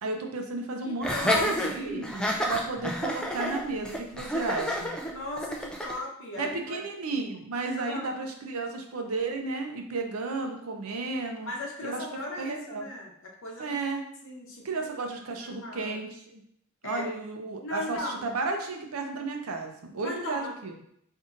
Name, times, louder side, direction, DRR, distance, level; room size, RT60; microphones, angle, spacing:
voice 1, 0.0-5.0 6.4-11.5 11.8-12.1 12.4-12.9 13.6-14.0 14.6-16.4 16.8-20.7, right 3 dB, 90° right, 3 dB, 0.6 m, -33 dB
voice 2, 0.8-2.1 5.1-6.8 7.8-8.2 11.5-13.1 13.4-13.8 14.2-16.0 16.8-17.1 17.6-18.2 20.0-20.5, left 2 dB, 60° left, -2 dB, 0.8 m, -37 dB
Laughter, 1.0-6.0, equal, 5° left, 0.3 m, -29 dB
5.1 x 2.7 x 2.5 m, 0.72 s
head